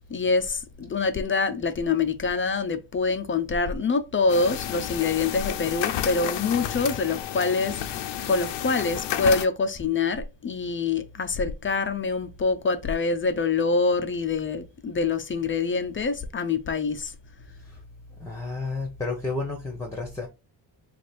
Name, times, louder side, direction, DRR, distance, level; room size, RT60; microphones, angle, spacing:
voice 1, 0.1-17.1, left 4 dB, 30° left, 0.5 m, -25 dB
sound 1, 4.3-9.5, left 11 dB, 70° left, 0.6 m, -31 dB
voice 2, 18.2-20.3, left 3 dB, 5° left, 0.9 m, -31 dB
3.2 x 2.5 x 4.1 m
cardioid pair, 100°, 45 cm